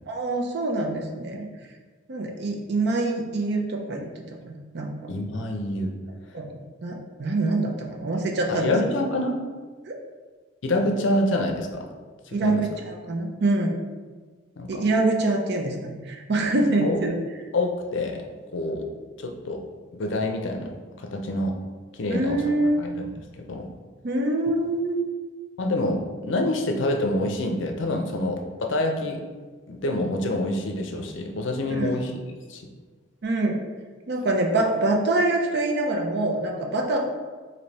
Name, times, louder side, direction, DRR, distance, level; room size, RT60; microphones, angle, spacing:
voice 1, 0.1-1.5 2.1-4.1 4.4-4.9 6.3-8.7 9.8-10.0 12.3-13.7 14.7-17.2 22.1-22.9 24.0-25.2 31.7-32.0 33.2-33.6 34.1-37.0, right 2 dB, 55° right, 1 dB, 0.5 m, -25 dB
voice 2, 5.1-5.9 8.5-9.4 10.6-11.9 12.3-12.6 14.6-14.9 16.8-17.0 17.5-18.2 18.5-18.9 19.2-19.6 19.9-20.7 21.0-21.6 21.9-22.4 22.8-23.7 25.6-29.2 29.7-32.1 32.5-32.6, left 1 dB, 70° left, 3 dB, 0.5 m, -27 dB
3.3 x 2.7 x 4.0 m, 1.4 s
head